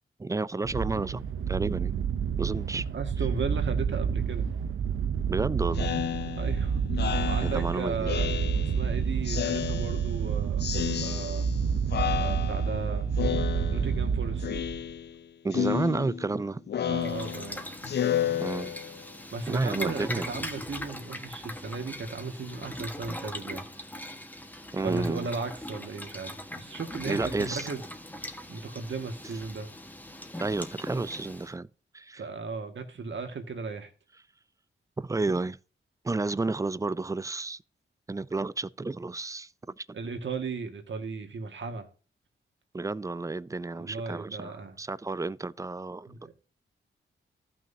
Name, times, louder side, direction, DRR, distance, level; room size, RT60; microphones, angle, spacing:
voice 1, 0.2-1.9 2.4-2.9 5.3-5.9 7.4-8.2 15.4-16.6 18.4-18.7 19.5-20.3 24.7-25.3 27.1-27.7 30.4-31.7 31.9-32.2 35.0-35.6 36.0-37.6 38.1-39.5 39.8-39.9 42.7-46.3, right 3 dB, 15° right, 0.4 m, -31 dB
sound 1, 0.6-14.9, right 6 dB, 85° right, 0.8 m, -29 dB
voice 2, 2.9-4.5 6.4-8.3 8.6-10.7 11.0-11.5 12.2-13.1 13.4-14.5 16.8-17.6 19.3-23.6 24.8-27.8 28.5-29.7 32.1-33.9 39.9-41.9 43.7-44.8 46.1-46.3, right 4 dB, 65° right, 1.9 m, -36 dB
Speech synthesizer, 5.7-8.9 9.3-10.3 10.6-11.6 11.9-12.8 13.2-14.1 14.4-15.2 15.5-19.1, left 9 dB, 55° left, 0.4 m, -32 dB
Boiling, 17.0-31.5, left 1 dB, 10° left, 1.4 m, -40 dB
14.5 x 6.1 x 2.8 m
cardioid pair, 75°, 21 cm